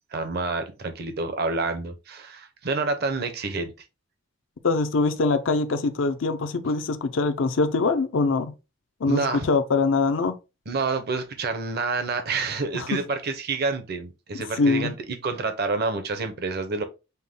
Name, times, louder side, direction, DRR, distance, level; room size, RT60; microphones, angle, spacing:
voice 1, 0.1-3.7 9.1-9.5 10.7-16.8, right 3 dB, 55° right, 0.7 m, -28 dB
voice 2, 4.6-8.5 9.0-10.3 12.7-12.9 14.6-14.9, left 3 dB, 70° left, 0.5 m, -23 dB
5.4 x 2.2 x 3.5 m
head